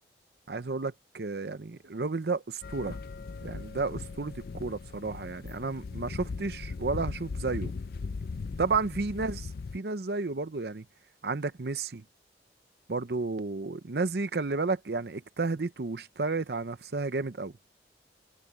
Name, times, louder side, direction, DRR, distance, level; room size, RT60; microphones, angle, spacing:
voice 1, 0.5-3.0 3.4-7.7 8.6-10.8 11.2-12.0 12.9-17.5, right 3 dB, 65° right, 0.7 m, -32 dB
sound 1, 2.6-9.8, left 4 dB, 55° left, 0.4 m, -38 dB
head